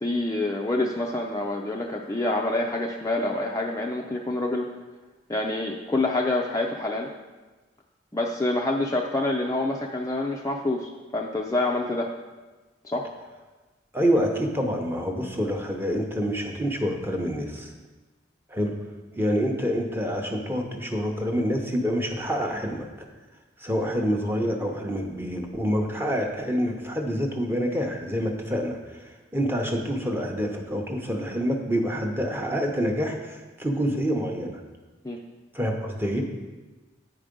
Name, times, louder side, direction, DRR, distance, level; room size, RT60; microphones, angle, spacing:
voice 1, 0.0-4.7 5.3-7.1 8.1-12.1 12.8-13.1 35.0-35.2, left 2 dB, 15° left, 0 dB, 0.4 m, -27 dB
voice 2, 13.9-17.7 18.5-18.7 19.2-22.9 23.6-34.6 35.5-36.2, equal, 10° right, 2 dB, 0.7 m, -27 dB
9.2 x 4.9 x 5.1 m, 1.2 s
head